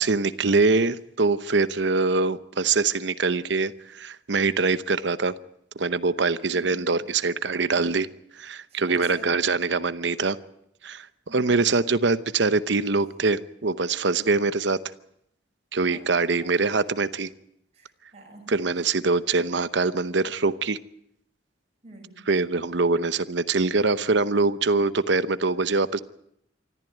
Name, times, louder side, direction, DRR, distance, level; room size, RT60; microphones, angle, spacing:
voice 1, 0.0-5.3 5.8-8.1 8.3-10.4 10.8-14.8 15.7-17.3 18.5-20.8 22.3-26.0, right 3 dB, 70° right, 14 dB, 0.9 m, -23 dB
voice 2, 6.5-6.9 8.7-9.4 11.3-11.6 15.9-16.7 17.7-18.5 21.8-22.3, right 2 dB, 35° right, 0 dB, 6.7 m, -47 dB
25.0 x 14.0 x 9.1 m, 0.76 s
head